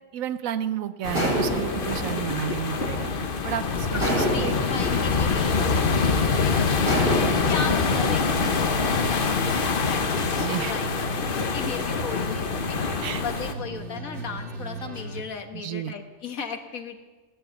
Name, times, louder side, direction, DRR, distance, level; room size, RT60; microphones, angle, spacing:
voice 1, 0.1-3.1 3.4-4.5 10.4-10.7 13.0-13.2 15.6-15.9, right 10 dB, 75° right, 13 dB, 1.1 m, -31 dB
sound 1, 1.0-13.5, left 5 dB, 45° left, 1.0 m, -25 dB
sound 2, 1.1-3.4 4.0-6.2 6.9-9.1, right 1 dB, 40° right, 4.5 m, -30 dB
voice 2, 3.9-12.9 13.2-17.0, left 5 dB, 75° left, 6 dB, 1.7 m, -36 dB
sound 3, 5.4-15.2, right 2 dB, 55° right, 1.7 m, -37 dB
16.5 x 11.0 x 7.2 m, 1.3 s
omnidirectional pair, 1.5 m